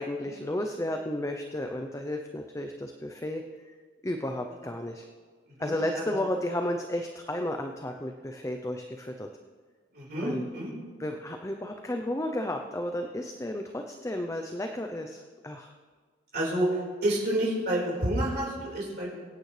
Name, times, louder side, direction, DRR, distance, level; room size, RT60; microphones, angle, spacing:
voice 1, 0.0-3.7 4.0-5.0 5.6-9.3 10.2-10.4 11.0-15.7, left 1 dB, 15° left, 4 dB, 0.6 m, -33 dB
voice 2, 5.6-6.0 9.9-10.7 16.3-19.1, right 1 dB, 60° right, -4 dB, 4.5 m, -29 dB
24.0 x 9.1 x 3.3 m, 1.5 s
head